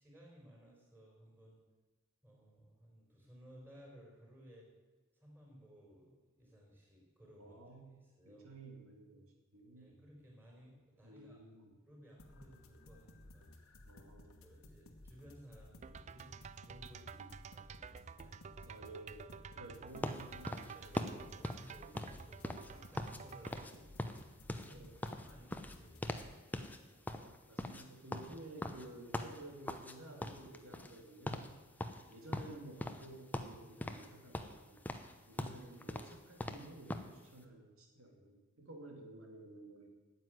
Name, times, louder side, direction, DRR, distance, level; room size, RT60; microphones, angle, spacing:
voice 1, 0.0-1.6 2.2-4.7 5.2-8.5 9.8-11.4 11.8-13.9 14.4-16.4 16.7-18.8 19.2-19.3 20.3-26.9 35.0-35.2, equal, 10° right, -2 dB, 4.6 m, -60 dB
voice 2, 7.4-8.0 8.2-10.0 11.0-11.8 13.9-14.3 17.1-17.4 18.6-19.2 19.5-20.7 24.7-25.0 25.3-25.4 27.1-31.5 32.1-34.8 35.3-39.9, right 2 dB, 75° right, 2 dB, 2.5 m, -53 dB
sound 1, 12.2-26.3, left 1 dB, 70° left, 1.3 m, -58 dB
sound 2, 15.8-23.7, right 6 dB, 35° right, 0.3 m, -51 dB
sound 3, 20.0-23.2 23.5-23.7 24.0-26.3 26.5-26.8 27.1-29.9 30.2-31.0 31.3-31.5 31.8-33.1 33.3-34.1 34.3-37.1, left 1 dB, 10° left, 0.7 m, -41 dB
9.4 x 8.2 x 9.4 m, 1.3 s
head